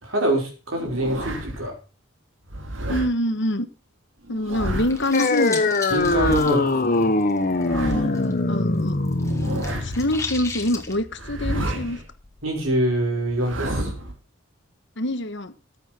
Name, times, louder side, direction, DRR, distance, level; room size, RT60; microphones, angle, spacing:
voice 1, 0.0-1.7 5.9-7.1 12.4-13.9, right 1 dB, 90° right, 1 dB, 5.0 m, -25 dB
sound 1, 0.7-1.7 2.5-3.1 4.2-5.1 5.9-6.5 7.4-8.3 9.2-10.1 11.1-12.0 13.3-14.2, right 1 dB, 75° right, 2.3 m, -30 dB
voice 2, 2.9-3.7 4.3-5.7 8.1-9.0 9.4-12.0 15.0-15.5, left 1 dB, 60° left, 10 dB, 1.4 m, -26 dB
sound 2, 4.7-8.3 8.6-11.0, left 4 dB, 15° left, 2.0 m, -36 dB
sound 3, 5.1-12.1, left 2 dB, 45° left, 1.1 m, -23 dB
14.5 x 8.1 x 4.4 m, 0.34 s
head